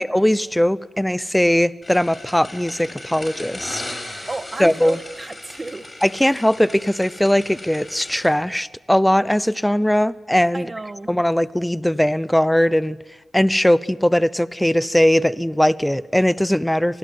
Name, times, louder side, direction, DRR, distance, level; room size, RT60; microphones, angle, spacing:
voice 1, 0.0-3.8 4.2-4.3 4.6-5.0 6.0-10.7 11.1-13.0 13.3-17.0, equal, 5° left, 17 dB, 0.8 m, -19 dB
sound 1, 1.8-8.3, left 1 dB, 30° left, 6.8 m, -37 dB
voice 2, 4.3-5.9 6.2-6.3 10.5-11.1, right 2 dB, 35° right, 11 dB, 1.8 m, -32 dB
26.0 x 20.5 x 9.5 m, 1.1 s
cardioid pair, 60°, 0 cm